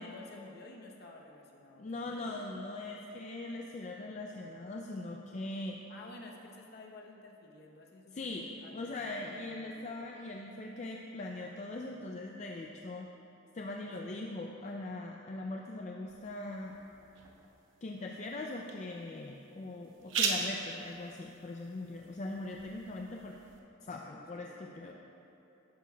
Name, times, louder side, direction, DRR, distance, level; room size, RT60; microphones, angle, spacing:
voice 1, 0.0-2.4 5.9-9.9 13.8-14.4 24.0-24.9, left 2 dB, 55° left, 1 dB, 0.9 m, -52 dB
voice 2, 1.8-5.8 8.1-8.4 8.7-13.1 13.5-16.8 17.8-23.4 23.8-24.9, left 2 dB, 35° left, 0 dB, 0.4 m, -41 dB
sound 1, 16.1-23.6, right 4 dB, 70° right, 0.8 m, -40 dB
11.5 x 9.3 x 2.3 m, 2.9 s
head